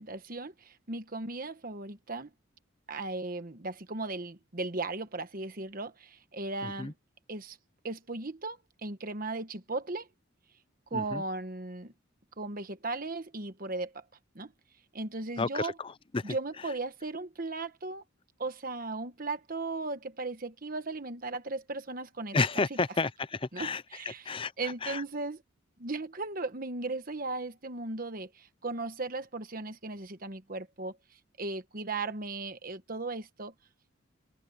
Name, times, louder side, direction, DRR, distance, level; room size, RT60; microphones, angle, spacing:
voice 1, 0.0-2.3 2.9-6.9 7.3-7.6 7.8-10.1 10.9-11.9 12.4-14.0 14.3-14.5 14.9-15.7 16.2-18.0 18.4-22.8 23.5-25.4 25.8-33.5, right 3 dB, 45° right, 1.2 m, -37 dB
voice 2, 6.6-6.9 10.9-11.2 15.4-16.4 22.3-25.0, left 3 dB, 25° left, 0.6 m, -32 dB
open air
head